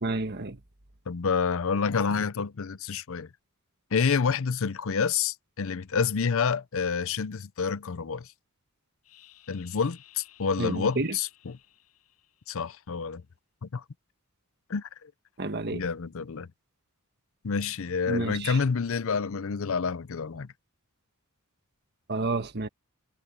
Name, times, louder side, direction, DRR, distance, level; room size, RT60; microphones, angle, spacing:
voice 1, 0.0-0.6 10.6-11.2 15.4-15.8 18.1-18.6 22.1-22.7, right 2 dB, 50° right, 1.5 m, -30 dB
voice 2, 1.1-3.3 3.9-8.3 9.5-11.6 12.5-13.2 13.6-13.8 14.7-15.1 15.7-16.5 17.4-20.5, left 5 dB, 65° left, 0.6 m, -28 dB
sound 1, 9.0-12.9, left 13 dB, 90° left, 7.4 m, -57 dB
head